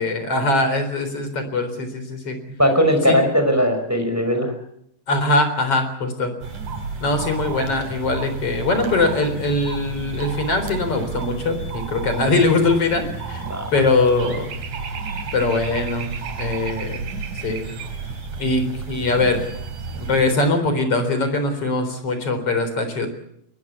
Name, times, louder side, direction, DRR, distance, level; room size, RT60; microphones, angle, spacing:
voice 1, 0.0-2.4 3.1-3.2 5.1-6.3 7.0-13.4 13.7-14.6 15.3-16.1 16.4-17.1 17.4-17.6 18.4-19.4 19.9-23.1, left 2 dB, 35° left, 8 dB, 4.7 m, -21 dB
voice 2, 2.6-4.5 13.4-13.7, equal, 5° right, 6 dB, 5.1 m, -19 dB
sound 1, 6.4-20.3, right 4 dB, 50° right, 4.1 m, -31 dB
22.5 x 21.5 x 8.5 m, 0.74 s
omnidirectional pair, 4.8 m